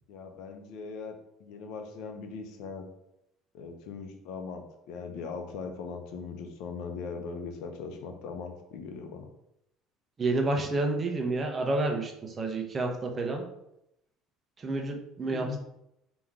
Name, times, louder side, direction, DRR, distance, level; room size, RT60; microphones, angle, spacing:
voice 1, 0.1-2.9 3.5-9.3 15.3-15.6, left 5 dB, 75° left, 5 dB, 0.7 m, -40 dB
voice 2, 10.2-13.5 14.6-15.6, right 2 dB, 30° right, 2 dB, 0.9 m, -29 dB
3.5 x 3.0 x 4.8 m, 0.82 s
supercardioid pair, 90°, 0 cm